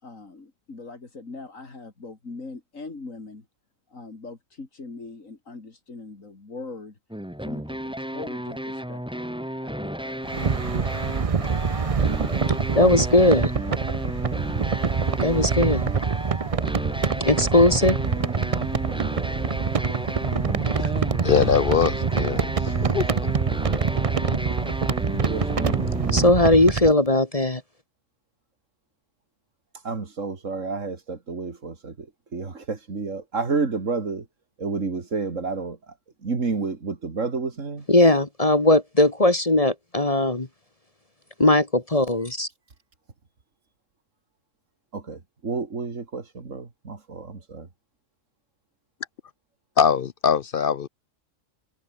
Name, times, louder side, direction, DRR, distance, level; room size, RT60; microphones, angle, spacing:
voice 1, 0.0-3.5 3.9-7.0 7.5-9.3 9.6-10.2, left 3 dB, 80° left, 3.7 m, -41 dB
sound 1, 7.1-26.3, equal, 5° right, 2.0 m, -33 dB
sound 2, 10.2-26.9, right 5 dB, 35° right, 0.7 m, -25 dB
voice 2, 12.7-13.5 15.2-15.9 17.2-18.0 26.1-27.6 37.9-40.5 41.4-42.5, left 2 dB, 25° left, 1.8 m, -19 dB
voice 3, 21.2-23.1 49.8-50.9, left 7 dB, 55° left, 0.7 m, -22 dB
voice 4, 25.2-25.9 29.8-31.9 32.3-34.2 34.6-35.8 36.2-37.8 44.9-47.7, right 4 dB, 75° right, 2.8 m, -30 dB
omnidirectional pair, 1.3 m